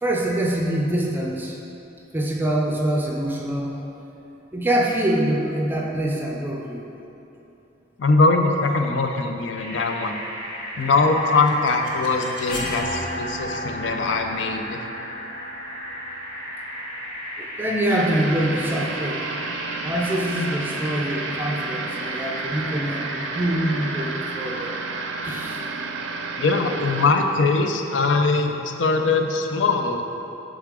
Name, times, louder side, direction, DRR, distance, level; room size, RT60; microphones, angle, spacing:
voice 1, 0.0-1.6 2.1-3.8 4.5-6.9 17.4-19.3 19.8-24.8 25.2-25.7, right 1 dB, 10° right, -2 dB, 0.4 m, -25 dB
voice 2, 8.0-10.2 10.8-14.8 26.4-30.0, left 3 dB, 80° left, 5 dB, 0.5 m, -21 dB
sound 1, 9.6-25.4, equal, 35° left, 1.1 m, -35 dB
sound 2, 11.0-16.9, equal, 50° left, 0.8 m, -34 dB
sound 3, 17.9-27.1, right 4 dB, 80° right, 0.4 m, -31 dB
8.1 x 3.7 x 3.7 m, 2.8 s
head